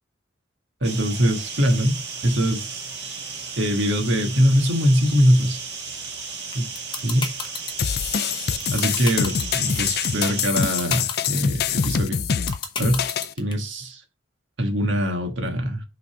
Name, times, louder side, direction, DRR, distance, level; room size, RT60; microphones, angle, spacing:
sound 1, 0.8-10.5, right 5 dB, 60° right, 1.8 m, -34 dB
voice 1, 0.8-2.0 2.2-2.8 3.6-5.6 6.5-6.7 7.0-7.3 8.7-12.2 12.8-13.0 13.4-14.0 14.6-15.8, equal, 75° right, 1.5 m, -22 dB
sound 2, 6.5-13.5, left 5 dB, 25° left, 1.0 m, -29 dB
sound 3, 7.8-13.3, left 7 dB, 55° left, 0.4 m, -25 dB
5.8 x 4.0 x 4.8 m
head